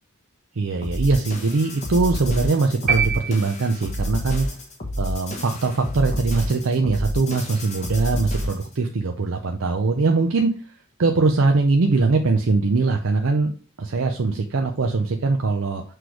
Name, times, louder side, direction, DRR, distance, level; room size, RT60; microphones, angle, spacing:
voice 1, 0.5-4.5 5.0-10.7 11.0-13.5 13.8-15.8, right 3 dB, 65° right, 3 dB, 0.5 m, -21 dB
sound 1, 0.8-8.7, equal, 35° left, 1.2 m, -29 dB
sound 2, 2.9-4.1, right 7 dB, 40° right, 1.6 m, -25 dB
6.1 x 3.3 x 4.7 m, 0.38 s
head